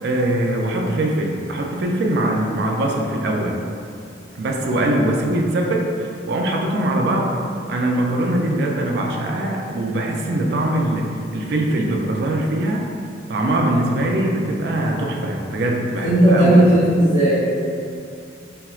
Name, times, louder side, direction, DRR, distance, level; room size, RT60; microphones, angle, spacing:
voice 1, 0.0-3.6 4.4-7.3 7.7-12.9 13.3-16.6, right 1 dB, 60° right, 1 dB, 0.3 m, -22 dB
voice 2, 16.0-17.4, right 1 dB, 60° left, -15 dB, 1.0 m, -14 dB
4.3 x 2.0 x 2.3 m, 2.5 s
head